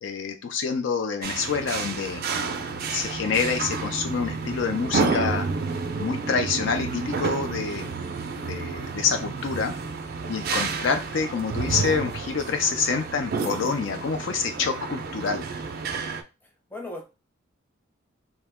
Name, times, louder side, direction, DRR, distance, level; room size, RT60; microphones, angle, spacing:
voice 1, 0.0-2.2 2.9-5.5 6.0-7.9 8.5-9.7 10.3-15.5, left 5 dB, 60° left, 6 dB, 0.4 m, -27 dB
sound 1, 1.2-16.2, right 4 dB, 50° right, 0.4 m, -30 dB
voice 2, 16.4-17.0, left 2 dB, 10° left, 0 dB, 0.6 m, -38 dB
2.8 x 2.1 x 3.4 m, 0.29 s
head